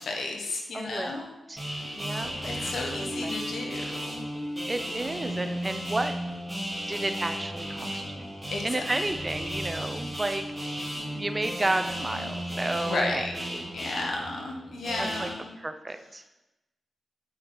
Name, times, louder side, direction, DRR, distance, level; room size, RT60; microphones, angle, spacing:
voice 1, 0.0-1.3 1.7-1.9 2.5-4.2 8.5-8.8 12.8-13.3 13.7-15.5, left 2 dB, 75° left, 1 dB, 1.4 m, -33 dB
voice 2, 0.7-1.1 1.5-1.6 2.0-3.4 4.7-6.1 6.9-8.2 8.6-10.4 10.9-13.3 13.5-13.6 15.0-15.3 15.6-16.3, right 2 dB, 25° right, 8 dB, 0.7 m, -32 dB
sound 1, 1.6-15.3, equal, 10° right, 3.0 m, -34 dB
8.0 x 5.6 x 4.0 m, 0.98 s
cardioid pair, 55°, 0 cm